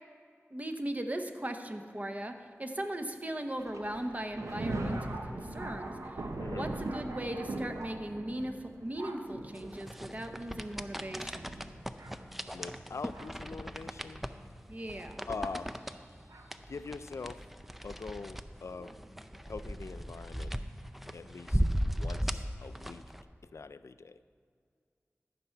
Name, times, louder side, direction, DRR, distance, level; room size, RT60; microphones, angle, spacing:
voice 1, 0.5-6.2 6.5-11.5 14.7-15.2, right 1 dB, 30° right, 6 dB, 0.8 m, -38 dB
Thunder, 3.6-13.5 14.3-14.4 15.4-15.5 16.3-16.5, right 2 dB, 85° right, 0.8 m, -41 dB
voice 2, 6.4-6.7 12.5-14.2 15.3-15.8 16.7-17.4 17.8-19.0 19.5-20.6 21.1-23.1 23.4-24.2, left 4 dB, 75° left, 13 dB, 0.3 m, -43 dB
sound 1, 9.5-23.2, equal, 5° right, 0.4 m, -37 dB
sound 2, 10.0-22.3, equal, 60° right, 2.6 m, -56 dB
14.0 x 5.9 x 4.5 m, 2.2 s
wide cardioid pair, 40°, 5 cm